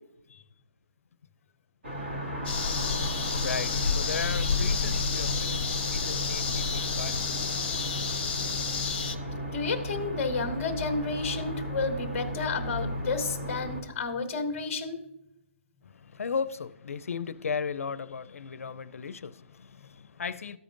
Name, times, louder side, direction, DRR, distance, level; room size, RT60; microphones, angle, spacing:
sound 1, 1.8-13.8, equal, 50° right, 1.9 m, -35 dB
sound 2, 2.4-9.1, left 5 dB, 40° left, 0.8 m, -30 dB
voice 1, 3.4-7.6 15.8-20.6, left 6 dB, 85° left, 0.4 m, -36 dB
voice 2, 9.5-15.0, left 4 dB, 15° left, 1.0 m, -31 dB
14.0 x 5.1 x 2.5 m
hypercardioid pair, 180°, 7 cm